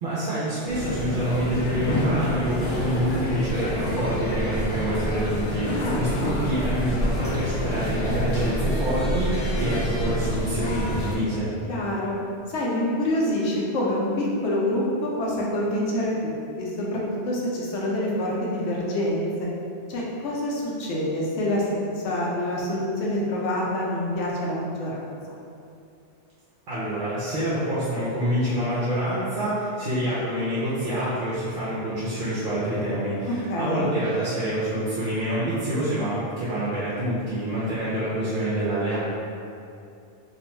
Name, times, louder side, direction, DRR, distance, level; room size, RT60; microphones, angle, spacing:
voice 1, 0.0-11.5 26.7-39.1, equal, 60° right, -10 dB, 0.6 m, -27 dB
sound 1, 0.7-11.2, equal, 55° left, 0.4 m, -27 dB
voice 2, 5.7-6.4 11.7-12.1 12.5-19.3 19.9-21.7 22.0-25.4 33.3-33.9, left 1 dB, 90° left, -4 dB, 0.9 m, -27 dB
2.5 x 2.1 x 2.9 m, 2.5 s
omnidirectional pair, 1.2 m